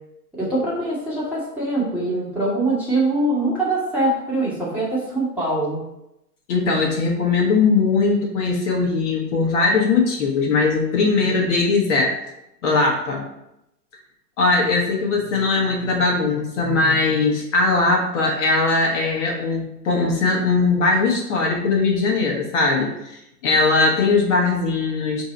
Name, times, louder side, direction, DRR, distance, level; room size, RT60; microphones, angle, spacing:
voice 1, 0.3-5.8, right 2 dB, 5° right, -9 dB, 1.3 m, -23 dB
voice 2, 6.5-12.2 12.6-13.3 14.4-25.2, left 3 dB, 45° left, -1 dB, 1.1 m, -20 dB
4.5 x 2.8 x 4.2 m, 0.86 s
hypercardioid pair, 125°, 49 cm